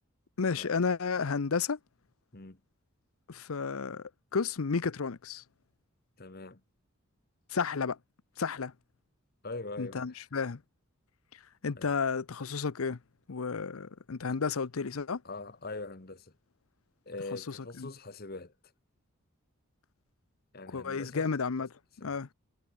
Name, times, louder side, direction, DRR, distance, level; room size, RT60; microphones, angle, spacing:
voice 1, 0.4-1.8 3.3-5.4 7.5-8.0 8.4-8.7 9.8-10.6 11.6-13.0 13.3-15.2 17.3-17.9 20.7-21.7 22.0-22.3, left 5 dB, 80° left, 0.7 m, -32 dB
voice 2, 6.2-6.6 9.4-10.2 11.8-11.9 15.2-16.3 17.0-18.5 20.5-21.3 22.0-22.2, left 3 dB, 45° left, 1.4 m, -42 dB
head